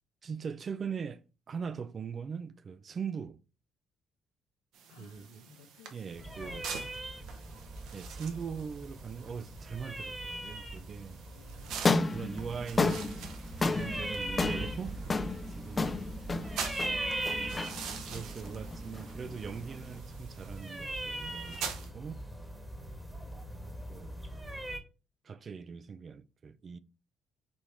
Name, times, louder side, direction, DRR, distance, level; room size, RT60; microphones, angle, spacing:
voice 1, 0.2-3.4 5.0-5.5 5.9-6.7 7.9-11.2 12.1-13.2 13.7-15.9 17.4-22.2 23.3-24.2 25.2-26.8, right 6 dB, 45° right, 0.4 m, -41 dB
sound 1, 4.7-21.9, right 6 dB, 65° right, 0.7 m, -46 dB
voice 2, 4.9-7.4 11.3-11.9 16.7-17.1 23.1-23.8, left 8 dB, 75° left, 0.7 m, -59 dB
sound 2, 6.1-24.8, right 1 dB, 15° right, 1.2 m, -40 dB
sound 3, 11.7-20.0, left 3 dB, 30° left, 0.4 m, -33 dB
4.3 x 3.0 x 3.5 m
hypercardioid pair, 50°, 0 cm